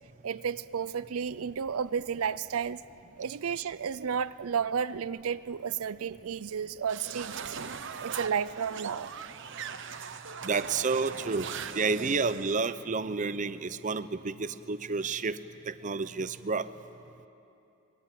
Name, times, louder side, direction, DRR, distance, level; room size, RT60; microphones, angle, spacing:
voice 1, 0.2-2.8 3.2-7.6 8.0-9.1, right 7 dB, 80° right, 15 dB, 0.5 m, -32 dB
sound 1, 6.9-12.6, right 6 dB, 60° right, 1.0 m, -40 dB
voice 2, 10.4-15.4 15.7-16.7, right 4 dB, 35° right, 13 dB, 0.6 m, -30 dB
25.5 x 21.0 x 9.1 m, 2.8 s
head